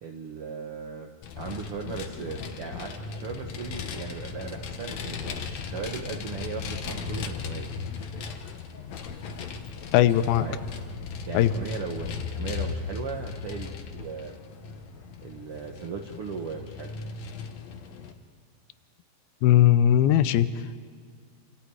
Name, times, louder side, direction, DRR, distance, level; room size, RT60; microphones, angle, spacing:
voice 1, 0.0-7.7 10.3-10.6 11.3-14.4 15.2-16.9, right 5 dB, 60° right, 2 dB, 1.5 m, -37 dB
Vehicle, 1.2-18.1, left 5 dB, 60° left, 2.1 m, -37 dB
voice 2, 9.9-10.5 11.3-11.5 19.4-20.5, left 11 dB, 90° left, 13 dB, 2.7 m, -19 dB
28.0 x 27.5 x 4.8 m, 2.1 s
omnidirectional pair, 4.3 m